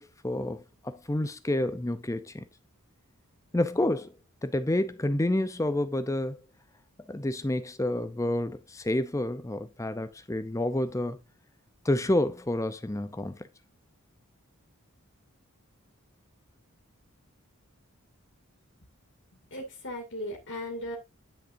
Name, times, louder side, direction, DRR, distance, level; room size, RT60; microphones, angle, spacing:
voice 1, 0.0-2.5 3.5-4.1 4.4-6.4 7.1-11.2 11.8-13.4, left 1 dB, 15° left, 0.5 m, -29 dB
voice 2, 19.5-21.0, left 1 dB, 55° left, 2.3 m, -37 dB
10.5 x 6.6 x 2.6 m
head